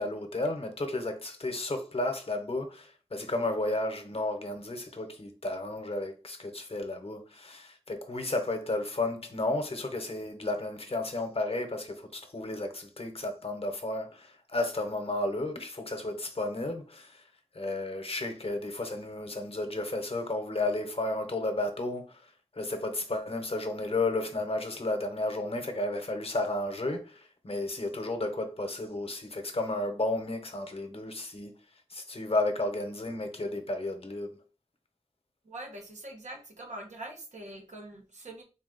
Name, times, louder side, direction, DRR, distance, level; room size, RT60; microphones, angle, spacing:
voice 1, 0.0-17.2 17.5-22.2 22.5-31.5 31.9-34.3, left 2 dB, 55° left, 0.8 m, -33 dB
voice 2, 35.4-38.4, right 1 dB, 90° right, 1.0 m, -43 dB
4.0 x 2.4 x 3.8 m
wide cardioid pair, 65°, 12 cm